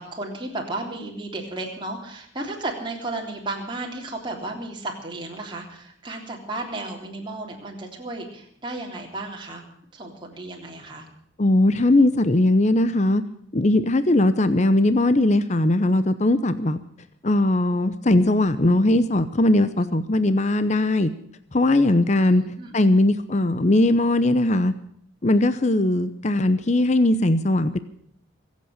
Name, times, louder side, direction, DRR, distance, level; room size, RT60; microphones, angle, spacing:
voice 1, 0.0-9.6 9.9-11.1 22.2-22.8, right 2 dB, 25° right, 0 dB, 3.4 m, -34 dB
voice 2, 11.4-13.2 13.5-16.8 17.2-21.1 21.5-22.4 22.7-24.7 25.2-27.8, left 1 dB, 35° left, 12 dB, 0.8 m, -19 dB
24.5 x 8.4 x 6.5 m, 0.68 s
head